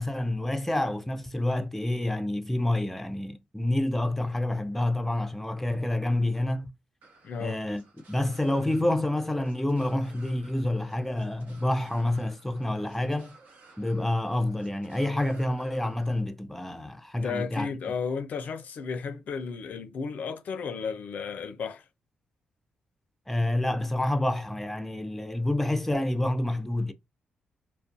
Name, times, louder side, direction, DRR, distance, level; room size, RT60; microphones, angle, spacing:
voice 1, 0.0-6.7 7.4-13.4 13.8-17.7 23.3-26.9, left 1 dB, 5° left, 0.4 m, -28 dB
sound 1, 7.0-16.2, right 3 dB, 75° right, 1.0 m, -57 dB
voice 2, 7.2-7.6 17.1-21.8, left 5 dB, 65° left, 0.4 m, -33 dB
2.4 x 2.1 x 2.5 m
cardioid pair, 65°, 3 cm